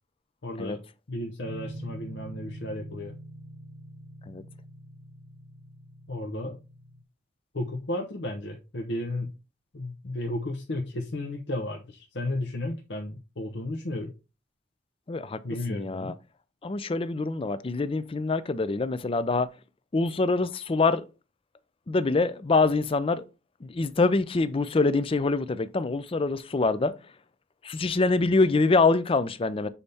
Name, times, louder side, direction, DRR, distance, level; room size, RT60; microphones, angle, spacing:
voice 1, 0.4-0.8 1.1-3.1 6.1-6.6 7.5-9.3 9.7-14.1 15.4-16.1, left 1 dB, 65° left, 0.8 m, -33 dB
sound 1, 1.4-7.0, right 1 dB, 80° right, 0.8 m, -45 dB
voice 2, 15.1-15.4 15.7-16.1 16.6-19.5 19.9-21.0 21.9-23.2 23.6-26.9 27.6-29.7, left 3 dB, 30° left, 0.4 m, -25 dB
7.1 x 4.1 x 3.4 m
head